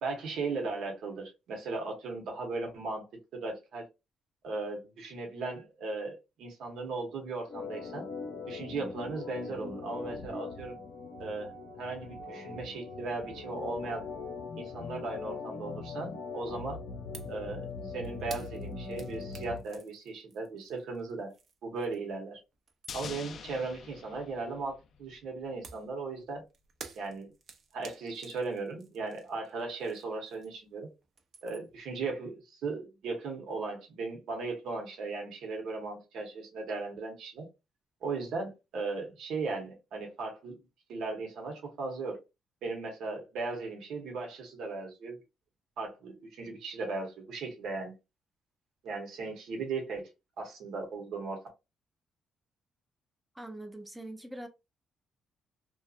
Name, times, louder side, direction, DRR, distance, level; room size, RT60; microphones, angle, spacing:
voice 1, 0.0-3.1 3.3-3.8 4.4-8.0 8.5-10.7 11.2-11.5 11.8-14.1 14.6-16.8 17.3-21.3 21.6-22.4 22.9-26.4 27.0-27.3 27.7-30.9 31.4-37.5 38.0-40.6 40.9-42.2 42.6-45.1 45.8-47.9 48.8-50.1 50.4-51.4, right 3 dB, 75° right, 1.0 m, -37 dB
Organ, 7.5-19.6, left 4 dB, 80° left, 0.8 m, -41 dB
sound 1, 17.1-17.4 17.7-22.2 22.5-23.3 25.6-30.7 31.0-31.8, right 5 dB, 60° right, 0.6 m, -52 dB
sound 2, 22.9-25.3 25.5-25.6, left 6 dB, 55° left, 0.3 m, -45 dB
voice 2, 53.3-54.5, right 1 dB, 5° right, 0.5 m, -43 dB
2.6 x 2.3 x 2.4 m
cardioid pair, 90°, 0 cm